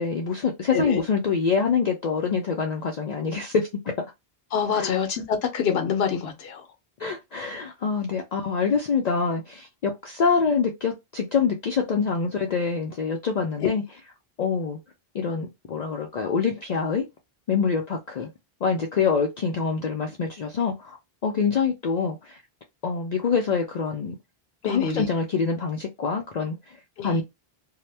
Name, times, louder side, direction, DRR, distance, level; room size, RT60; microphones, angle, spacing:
voice 1, 0.0-3.7 4.0-4.1 4.7-5.0 7.0-14.0 14.4-14.8 15.1-17.1 17.5-18.3 18.6-21.0 21.2-22.4 22.8-24.2 24.6-27.2, left 5 dB, 55° left, 0.5 m, -25 dB
voice 2, 4.5-6.6 13.6-13.7 24.6-25.0 27.0-27.2, left 7 dB, 80° left, 0.9 m, -26 dB
2.7 x 2.1 x 3.2 m
omnidirectional pair, 1.0 m